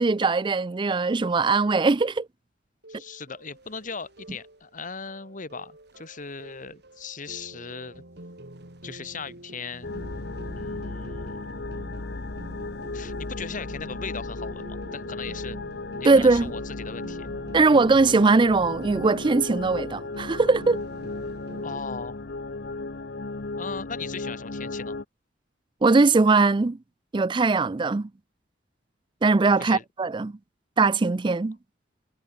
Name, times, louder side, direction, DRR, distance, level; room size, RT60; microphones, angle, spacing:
voice 1, 0.0-2.3 16.0-16.5 17.5-20.8 25.8-26.8 27.1-28.1 29.2-30.4 30.8-31.6, right 3 dB, 25° right, 0.4 m, -20 dB
sound 1, 2.8-21.8, right 1 dB, 65° right, 4.0 m, -46 dB
voice 2, 2.9-8.0 8.8-9.9 10.5-11.5 12.9-15.6 16.0-17.3 21.6-22.2 23.6-25.0 29.6-29.8, left 5 dB, 45° left, 1.8 m, -38 dB
sound 2, 9.8-25.0, left 3 dB, 60° left, 1.0 m, -35 dB
head